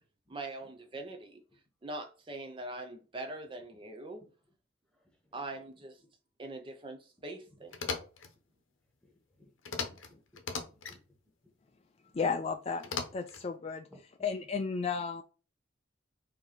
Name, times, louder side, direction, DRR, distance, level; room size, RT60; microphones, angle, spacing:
voice 1, 0.3-1.4 1.8-4.2 5.3-6.0 6.4-8.1, right 2 dB, 25° right, 0.5 m, -42 dB
voice 2, 4.9-5.4 7.5-7.7 9.0-9.5 9.8-10.2 10.9-11.0 12.0-12.1 13.9-14.0, left 1 dB, 5° left, 1.2 m, -60 dB
sound 1, 7.7-8.3 9.7-10.1 10.4-11.0 12.8-13.5, left 5 dB, 90° left, 0.8 m, -37 dB
voice 3, 12.1-12.9 13.1-13.9 14.2-15.2, left 5 dB, 30° left, 0.3 m, -33 dB
4.5 x 2.8 x 3.8 m
head